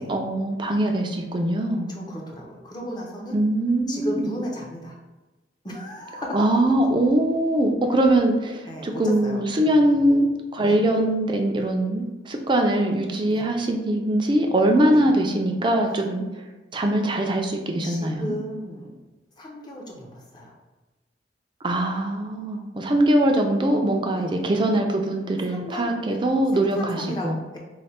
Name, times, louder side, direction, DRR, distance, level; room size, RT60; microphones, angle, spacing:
voice 1, 0.0-1.9 3.3-4.3 6.3-16.2 16.7-18.3 21.6-27.4, right 1 dB, 25° right, 3 dB, 0.4 m, -22 dB
voice 2, 1.9-3.4 3.9-5.0 5.6-6.5 8.7-10.1 10.7-10.8 13.3-13.4 17.8-18.9 19.4-20.5 24.1-24.5 25.5-26.2 26.5-27.6, equal, 25° left, -2 dB, 0.7 m, -35 dB
3.2 x 2.2 x 4.1 m, 1.1 s
head